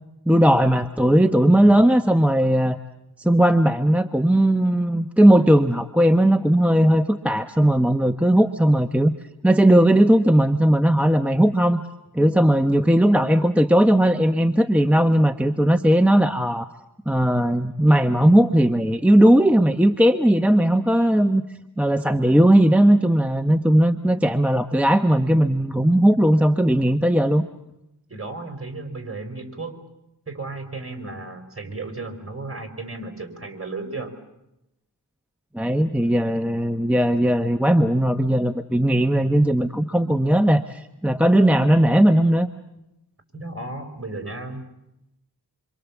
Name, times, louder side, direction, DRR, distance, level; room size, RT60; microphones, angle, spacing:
voice 1, 0.3-2.8 3.2-9.1 9.4-11.8 12.1-16.7 17.1-21.4 21.8-27.4 35.5-42.5, right 1 dB, 5° right, 6 dB, 1.0 m, -18 dB
voice 2, 1.5-1.8 28.1-29.8 30.3-34.1 43.3-44.6, right 3 dB, 35° right, 6 dB, 5.0 m, -34 dB
27.0 x 26.5 x 7.3 m, 0.89 s
wide cardioid pair, 50°, 40 cm